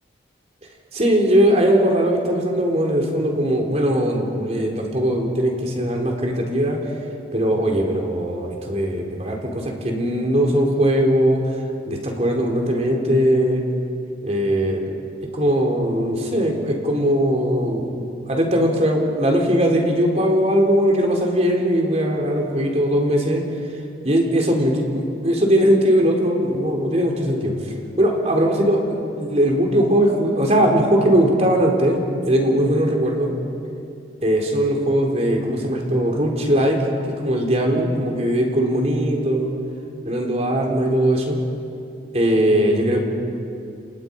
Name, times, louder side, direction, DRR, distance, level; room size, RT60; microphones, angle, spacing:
voice 1, 0.9-6.8 7.3-11.4 11.9-13.6 14.2-14.8 15.3-17.9 18.3-23.4 24.0-32.0 32.3-33.3 34.2-36.8 37.2-39.5 40.0-41.4 42.1-43.0, equal, 35° right, 1 dB, 3.8 m, -20 dB
30.0 x 29.0 x 5.4 m, 2.6 s
head